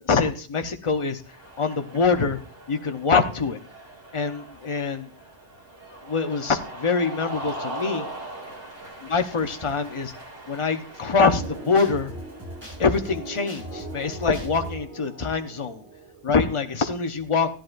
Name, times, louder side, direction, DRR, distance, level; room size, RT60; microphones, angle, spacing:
voice 1, 0.0-1.2 1.6-2.4 2.7-3.6 4.1-5.1 6.0-8.1 9.0-10.1 10.5-12.1 12.8-15.8 16.2-17.5, left 4 dB, 30° left, 6 dB, 0.8 m, -24 dB
Cheering, 1.2-14.6, right 2 dB, 85° right, 2.6 m, -41 dB
sound 1, 11.2-16.7, right 1 dB, 10° right, 4.8 m, -39 dB
15.5 x 10.5 x 2.5 m, 0.39 s
omnidirectional pair, 1.2 m